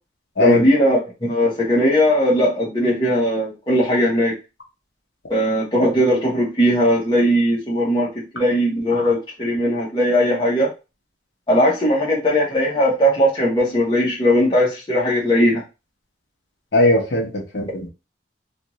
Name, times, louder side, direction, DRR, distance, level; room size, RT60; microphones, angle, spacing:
voice 1, 0.4-4.3 5.3-10.7 11.5-15.6, equal, 25° left, -5 dB, 1.0 m, -18 dB
voice 2, 16.7-17.9, left 1 dB, 70° left, -1 dB, 0.9 m, -19 dB
2.5 x 2.5 x 3.0 m, 0.28 s
head